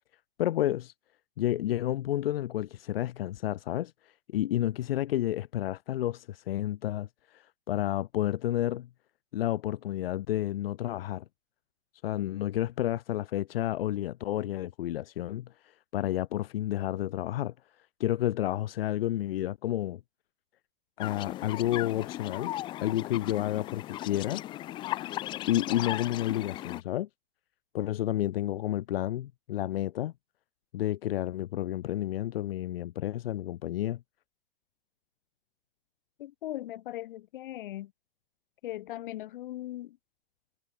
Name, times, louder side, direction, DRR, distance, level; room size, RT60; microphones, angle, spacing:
voice 1, 0.4-0.9 1.4-8.9 9.3-11.2 12.0-17.5 18.0-20.0 21.0-22.5 22.8-24.4 25.5-27.1 27.7-30.1 30.7-34.0, left 13 dB, 75° left, 1.5 m, -30 dB
sound 1, 21.0-26.8, left 14 dB, 15° left, 0.7 m, -37 dB
voice 2, 36.2-37.9 38.6-40.0, left 14 dB, 60° left, 2.6 m, -39 dB
supercardioid pair, 170°, 30 cm